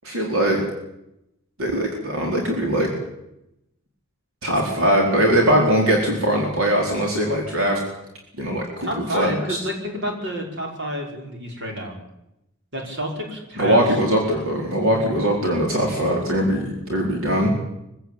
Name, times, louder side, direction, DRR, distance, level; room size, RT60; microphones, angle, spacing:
voice 1, 0.0-0.6 1.6-2.9 4.4-7.8 8.4-9.6 13.6-17.5, equal, 70° right, 0 dB, 4.4 m, -21 dB
voice 2, 8.8-12.0 12.7-13.8, equal, 55° right, 1 dB, 5.7 m, -29 dB
24.0 x 16.0 x 9.1 m, 0.87 s
head